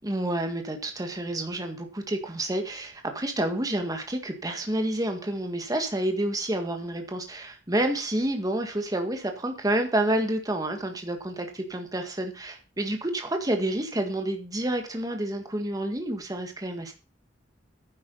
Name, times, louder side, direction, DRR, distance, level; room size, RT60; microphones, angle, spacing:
voice 1, 0.0-16.9, right 1 dB, 20° right, 5 dB, 1.7 m, -29 dB
10.5 x 8.3 x 5.4 m, 0.33 s
head